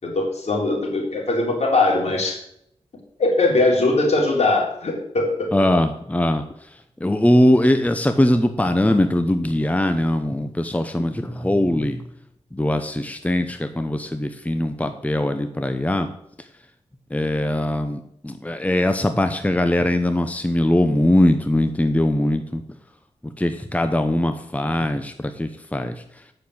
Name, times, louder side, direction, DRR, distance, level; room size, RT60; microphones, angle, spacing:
voice 1, 0.0-2.4 3.2-5.7, left 2 dB, 70° left, -1 dB, 3.8 m, -21 dB
voice 2, 5.5-6.4 7.0-12.0 12.5-16.1 17.1-22.6 23.4-26.0, left 1 dB, 10° left, 8 dB, 0.9 m, -21 dB
8.2 x 6.7 x 8.0 m, 0.74 s
cardioid pair, 60°, 12 cm